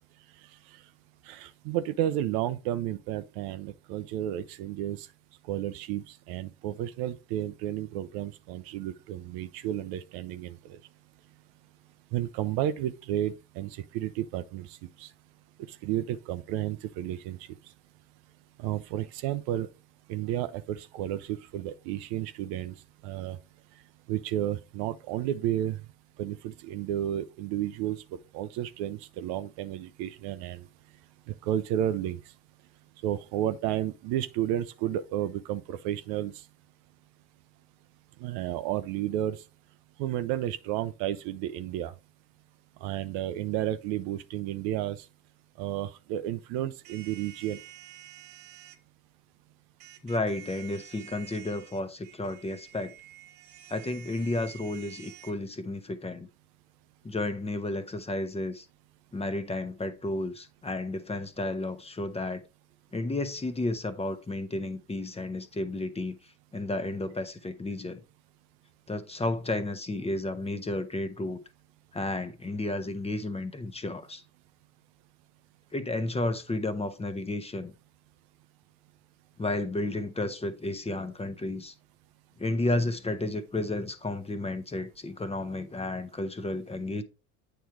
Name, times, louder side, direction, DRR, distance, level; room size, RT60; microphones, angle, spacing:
voice 1, 1.3-5.1 5.5-10.8 12.1-15.1 15.7-17.4 18.6-19.7 20.1-22.7 23.0-23.4 24.1-25.8 26.2-28.0 28.3-30.6 31.3-32.2 33.0-36.3 38.2-39.4 40.0-41.9 42.8-45.1 45.6-47.6, right 12 dB, 60° right, 0.6 m, -32 dB
sound 1, 46.8-48.8 49.8-55.3, right 13 dB, 80° right, 0.9 m, -49 dB
voice 2, 50.0-52.9 53.7-56.3 57.0-58.7 59.1-62.4 62.9-66.2 66.5-68.0 68.9-71.4 71.9-74.2 75.7-77.7 79.4-81.7 82.4-87.0, left 2 dB, 15° left, 0.9 m, -32 dB
8.6 x 3.3 x 4.6 m
hypercardioid pair, 65°, 44 cm